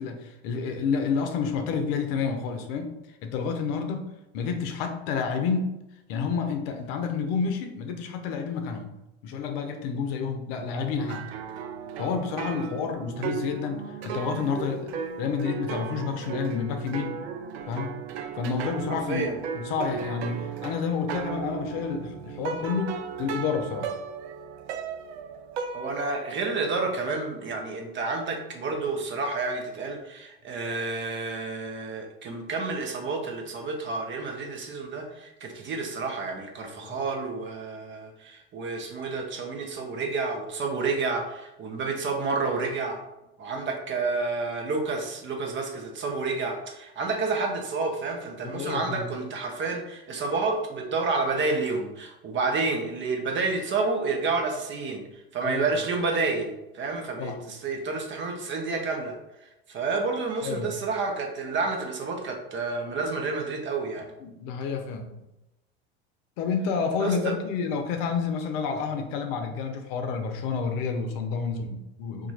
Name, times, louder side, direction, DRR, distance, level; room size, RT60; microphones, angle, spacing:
voice 1, 0.0-3.0 3.2-4.1 4.3-5.7 6.1-8.9 9.2-11.2 12.0-14.9 15.2-17.2 17.7-18.0 18.4-19.3 19.5-22.9 23.2-23.9 36.8-37.0 48.4-49.1 55.4-55.6 57.2-57.4 60.4-60.8 64.2-65.1 66.4-72.3, left 5 dB, 65° left, 5 dB, 0.7 m, -29 dB
sound 1, 11.0-26.1, right 6 dB, 85° right, 0.5 m, -35 dB
voice 2, 18.9-19.4 25.7-43.0 43.4-55.0 55.3-59.2 59.7-64.1 67.0-67.3, right 3 dB, 35° right, 2 dB, 0.9 m, -30 dB
2.9 x 2.5 x 4.1 m, 0.92 s
hypercardioid pair, 95°, 32 cm